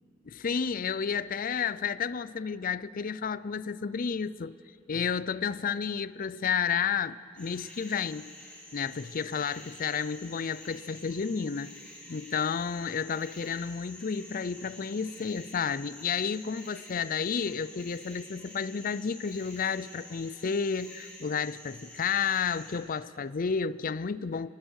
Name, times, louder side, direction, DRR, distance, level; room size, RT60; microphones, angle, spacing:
voice 1, 0.3-4.5 4.9-8.3 8.7-11.7 12.1-24.5, left 6 dB, 45° left, 0.5 m, -31 dB
sound 1, 7.4-22.7, left 1 dB, 5° left, 5.4 m, -49 dB
26.5 x 19.5 x 6.5 m
head